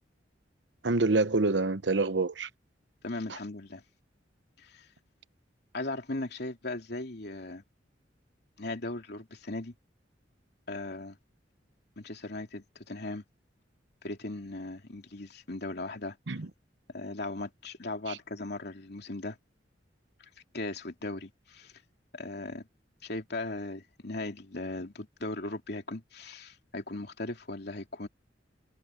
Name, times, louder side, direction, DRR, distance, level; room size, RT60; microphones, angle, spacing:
voice 1, 0.8-2.5 16.3-16.5 18.1-18.2, right 3 dB, 70° right, 1.0 m, -26 dB
voice 2, 3.0-3.8 4.6-4.9 5.7-7.6 8.6-9.7 10.7-11.2 12.0-13.2 14.0-16.2 16.9-19.4 20.5-21.7 22.1-22.7 23.0-28.1, left 2 dB, 60° left, 3.0 m, -38 dB
head